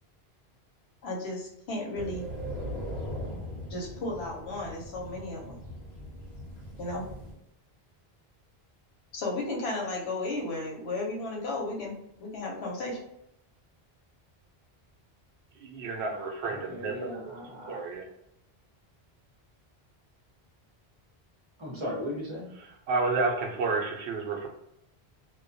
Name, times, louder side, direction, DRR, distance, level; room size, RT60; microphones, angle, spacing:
voice 1, 1.0-2.2 3.7-5.6 6.8-7.0 9.1-11.9 12.2-13.0, left 2 dB, 80° left, -1 dB, 0.9 m, -34 dB
sound 1, 1.9-7.3, equal, 45° left, 0.9 m, -39 dB
voice 2, 15.6-17.3 17.7-18.0 22.9-24.5, right 3 dB, 85° right, 1 dB, 0.8 m, -30 dB
voice 3, 16.5-17.8 21.6-22.5, equal, 30° right, -5 dB, 0.8 m, -37 dB
2.2 x 2.2 x 2.6 m, 0.81 s
omnidirectional pair, 1.1 m